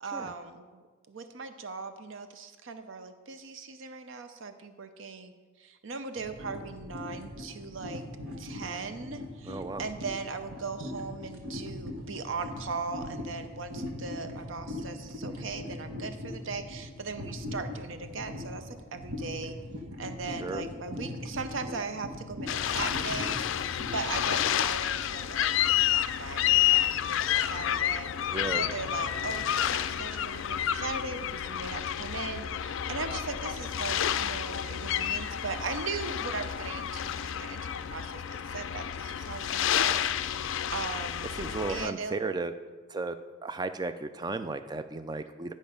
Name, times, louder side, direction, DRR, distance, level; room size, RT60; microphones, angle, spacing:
voice 1, 0.0-5.3 5.6-8.0 8.3-19.6 20.0-25.5 25.9-37.6 37.9-40.0 40.4-41.3 41.7-42.2, right 4 dB, 65° right, 9 dB, 0.7 m, -39 dB
sound 1, 6.2-24.4, left 1 dB, 85° right, 1.3 m, -40 dB
voice 2, 9.4-9.8 20.3-20.6 28.3-28.7 41.3-42.5 42.9-43.2 43.4-45.5, right 3 dB, 20° right, 11 dB, 0.3 m, -34 dB
sound 2, 22.5-41.9, left 10 dB, 65° left, 0.4 m, -30 dB
10.5 x 5.2 x 5.2 m, 1.4 s
head